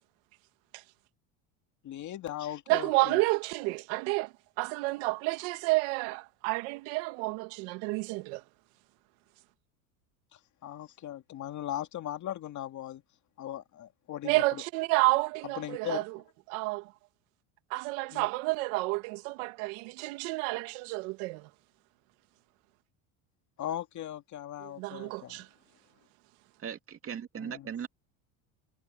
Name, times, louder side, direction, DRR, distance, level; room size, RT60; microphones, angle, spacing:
voice 1, 1.8-3.2 10.6-13.0 13.4-14.4 15.6-16.0 18.1-18.3 23.6-25.4 27.4-27.7, left 12 dB, 45° left, 2.3 m, -38 dB
voice 2, 2.7-8.4 14.2-16.2 16.5-16.9 17.7-21.5 24.6-25.5, right 24 dB, 75° right, 2.3 m, -30 dB
voice 3, 26.6-27.9, right 8 dB, 30° right, 2.5 m, -38 dB
supercardioid pair, 120°, 42 cm